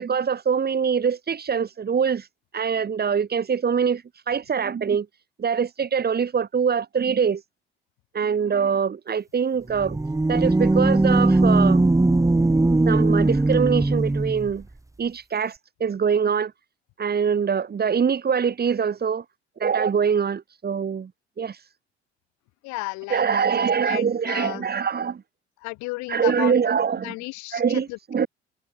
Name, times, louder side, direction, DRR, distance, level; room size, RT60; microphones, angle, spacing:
voice 1, 0.0-2.3 2.5-5.1 5.4-7.4 8.1-10.0 10.3-11.8 12.9-14.7 15.0-16.5 17.0-19.2 19.6-21.1 21.4-21.6 23.1-25.2 26.1-27.1 27.5-28.3, right 6 dB, 30° right, 2.5 m, -23 dB
sound 1, 9.7-14.5, right 2 dB, 10° right, 2.0 m, -19 dB
voice 2, 22.6-24.7 25.6-26.6 27.0-28.0, left 25 dB, 60° left, 4.5 m, -34 dB
figure-of-eight pair, 55°, 32 cm